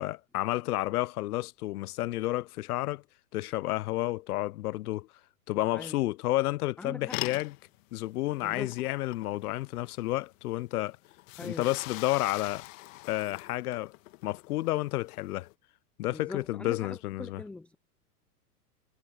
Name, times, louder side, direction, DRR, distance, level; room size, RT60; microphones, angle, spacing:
voice 1, 0.0-3.0 3.3-5.1 5.5-7.5 7.9-11.0 11.4-12.7 13.1-13.9 14.2-15.5 16.0-17.4, left 17 dB, 70° left, 0.6 m, -31 dB
voice 2, 6.8-7.2 8.4-8.8 11.4-11.7 16.1-17.8, left 2 dB, 5° left, 0.5 m, -42 dB
sound 1, 7.1-15.5, left 21 dB, 55° left, 2.0 m, -43 dB
hypercardioid pair, 120°, 46 cm